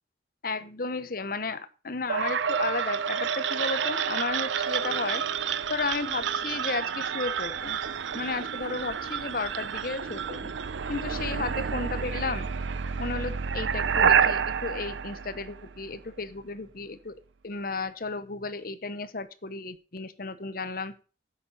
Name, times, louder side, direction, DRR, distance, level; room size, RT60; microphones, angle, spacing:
voice 1, 0.4-5.2 5.7-7.8 8.1-10.5 10.9-12.5 13.0-17.1 17.4-20.9, left 3 dB, 50° left, 13 dB, 1.0 m, -33 dB
sound 1, 2.1-16.0, right 7 dB, 80° right, 0.6 m, -29 dB
10.0 x 7.5 x 5.5 m, 0.36 s
head